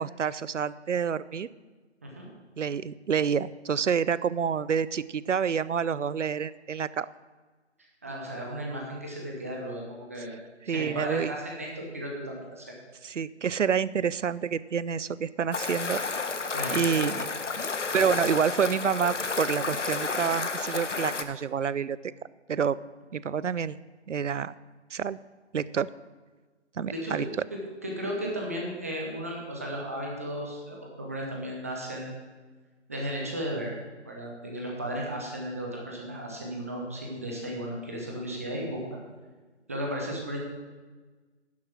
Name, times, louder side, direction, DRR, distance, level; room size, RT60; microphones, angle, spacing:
voice 1, 0.0-1.5 2.6-7.1 10.7-11.3 13.0-16.0 16.7-17.3 17.9-22.0 22.5-22.8 23.1-23.8 24.1-24.5 24.9-25.2 25.5-25.9 26.8-27.3, right 7 dB, 90° right, 18 dB, 0.5 m, -28 dB
voice 2, 8.0-10.3 10.7-12.7 16.5-16.9 26.9-32.1 32.9-33.7 34.0-39.0 39.7-40.4, equal, 15° right, -1 dB, 0.7 m, -35 dB
sound 1, 15.5-21.2, left 4 dB, 80° left, 1.0 m, -31 dB
11.0 x 7.3 x 6.0 m, 1.3 s
figure-of-eight pair, 155°, 36 cm